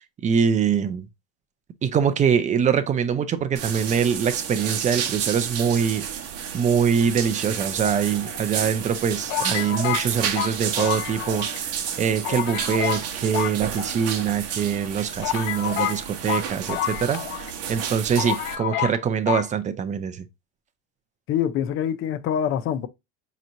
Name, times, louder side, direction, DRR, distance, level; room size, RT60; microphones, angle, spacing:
voice 1, 0.2-1.1 1.8-6.1 6.5-20.2, right 7 dB, 20° right, 0.5 m, -24 dB
sound 1, 3.6-18.6, right 8 dB, 40° right, 1.0 m, -31 dB
sound 2, 7.8-8.6 9.3-11.6 11.9-12.0 12.2-13.1 13.3-14.3 14.8-14.9 15.2-17.5 17.8-17.9 18.2-19.0 19.3-19.5, left 12 dB, 80° left, 0.6 m, -29 dB
voice 2, 21.3-22.9, left 9 dB, 35° left, 0.5 m, -25 dB
5.2 x 3.0 x 2.5 m
supercardioid pair, 130°, 37 cm